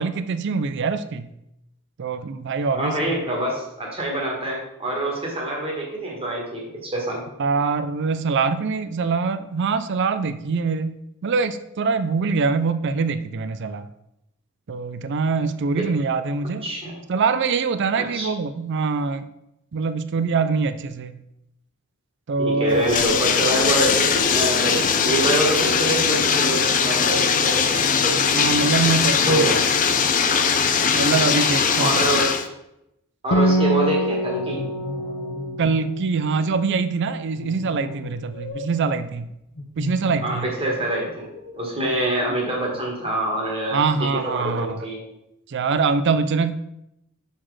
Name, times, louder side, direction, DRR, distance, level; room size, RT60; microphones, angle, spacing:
voice 1, 0.0-1.3 2.0-3.2 7.4-13.9 14.7-16.7 17.1-19.3 19.7-21.1 22.3-22.8 28.3-29.6 30.9-32.0 35.6-39.3 39.8-40.5 42.3-42.4 43.7-44.9 45.5-46.5, right 4 dB, 50° right, 12 dB, 0.4 m, -24 dB
voice 2, 2.7-7.2 15.8-15.9 16.4-16.9 18.0-18.3 22.4-28.2 29.2-29.6 31.8-32.3 33.2-34.6 40.2-41.3 41.5-45.0, right 1 dB, 25° right, -1 dB, 1.6 m, -25 dB
Bathtub (filling or washing), 22.7-32.5, left 6 dB, 35° left, 0.5 m, -20 dB
Acoustic guitar, 33.3-37.0, right 1 dB, 90° left, 0.9 m, -25 dB
sound 1, 34.2-35.8 36.4-36.6 37.4-38.8 39.5-40.4 40.7-41.6, left 2 dB, 50° left, 1.1 m, -36 dB
6.2 x 4.1 x 4.8 m, 0.84 s
head